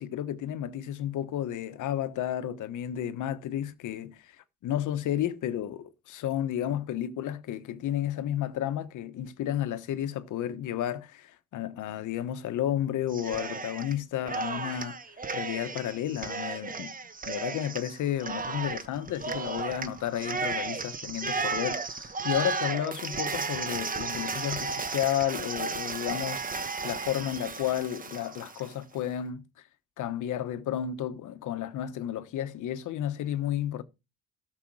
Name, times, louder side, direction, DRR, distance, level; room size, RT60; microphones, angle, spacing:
voice 1, 0.0-4.3 4.6-15.0 15.3-16.9 17.3-26.4 26.8-29.4 30.0-33.8, left 11 dB, 80° left, 1.2 m, -32 dB
Cheering, 13.1-13.9 14.2-28.7, right 4 dB, 30° right, 1.2 m, -34 dB
13.0 x 6.8 x 4.8 m
cardioid pair, 90°, 30 cm